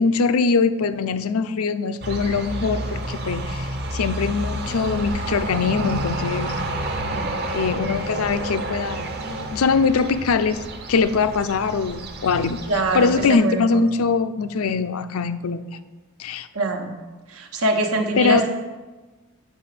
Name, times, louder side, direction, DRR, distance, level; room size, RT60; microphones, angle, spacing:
voice 1, 0.0-6.6 7.5-10.6 10.9-12.6 12.9-15.6 16.2-16.5 18.2-18.4, left 5 dB, 80° left, 11 dB, 0.5 m, -22 dB
sound 1, 2.0-13.3, right 1 dB, 45° right, 0.8 m, -30 dB
voice 2, 12.7-13.7 16.5-16.9 17.3-18.5, right 2 dB, 85° right, 4 dB, 1.2 m, -23 dB
8.1 x 5.7 x 5.9 m, 1.2 s
head